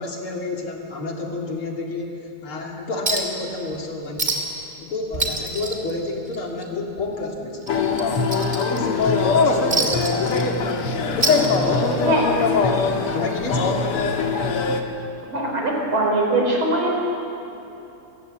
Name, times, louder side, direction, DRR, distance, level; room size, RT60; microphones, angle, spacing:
voice 1, 0.0-4.5 4.8-7.6 8.1-10.4 11.1-13.9, left 2 dB, 70° left, 0 dB, 3.5 m, -30 dB
Chink clink, 3.1-3.4 3.7-3.8 4.2-4.6 4.9-6.6 7.0-7.2 7.6-9.0 9.7-10.8 11.1-12.0 13.1-13.2, right 2 dB, 25° right, 2.5 m, -26 dB
sound 1, 7.7-14.8, left 4 dB, 90° left, 2.4 m, -21 dB
voice 2, 15.3-16.9, right 2 dB, 65° right, 0 dB, 5.2 m, -21 dB
28.5 x 16.0 x 8.0 m, 3.0 s
omnidirectional pair, 2.4 m